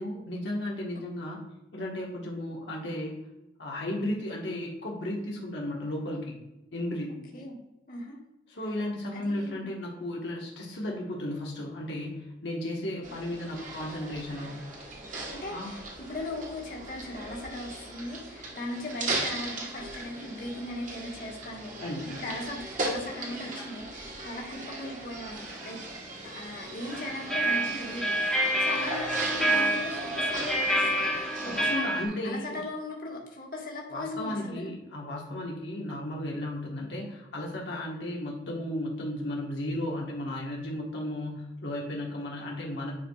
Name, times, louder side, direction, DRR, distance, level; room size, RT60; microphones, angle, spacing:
voice 1, 0.0-1.4 1.7-3.2 3.6-6.4 6.7-7.2 8.5-14.6 15.5-15.7 21.8-22.1 31.5-32.6 33.9-42.9, left 1 dB, 85° left, -2 dB, 1.3 m, -34 dB
voice 2, 7.9-8.2 9.1-9.7 15.3-25.8 26.2-34.7, left 1 dB, 55° left, -2 dB, 1.4 m, -39 dB
sound 1, 13.0-31.8, right 2 dB, 45° right, 1.3 m, -38 dB
sound 2, 27.0-32.1, right 1 dB, 5° left, 1.0 m, -28 dB
10.0 x 4.7 x 2.3 m, 0.96 s
head